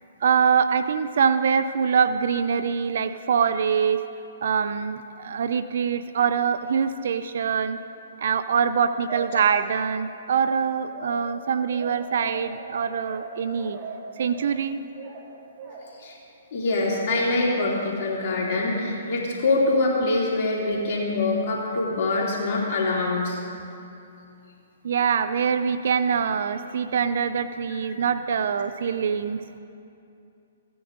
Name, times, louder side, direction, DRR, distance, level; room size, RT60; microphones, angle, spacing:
voice 1, 0.2-4.0 4.4-7.8 8.2-13.8 14.2-14.8 24.8-29.4, right 7 dB, 65° right, 12 dB, 0.4 m, -24 dB
sound 1, 9.1-10.1 10.8-16.1, right 4 dB, 40° right, 1.9 m, -40 dB
voice 2, 16.5-23.4 27.7-27.8, left 2 dB, 50° left, -4 dB, 3.0 m, -24 dB
16.0 x 9.6 x 3.9 m, 2.7 s
hypercardioid pair, 135°, 0 cm